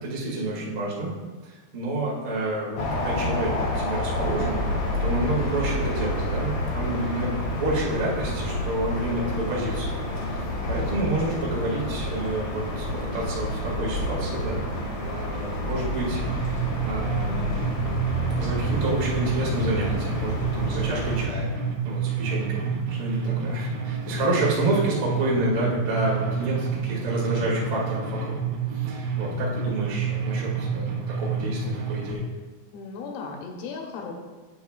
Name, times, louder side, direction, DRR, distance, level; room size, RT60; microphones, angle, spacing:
voice 1, 0.0-1.1 1.4-4.6 5.0-10.0 10.3-14.6 15.0-17.7 18.4-21.5 21.8-28.3 28.7-30.9 31.2-31.6 31.8-32.2, right 1 dB, 45° right, -6 dB, 1.5 m, -29 dB
sound 1, 2.8-21.2, left 1 dB, 60° left, 1.6 m, -29 dB
sound 2, 16.1-32.1, right 5 dB, 75° right, 2.5 m, -29 dB
voice 2, 32.7-34.1, left 4 dB, 80° left, 1 dB, 3.4 m, -37 dB
9.6 x 8.3 x 2.4 m, 1.3 s
omnidirectional pair, 5.5 m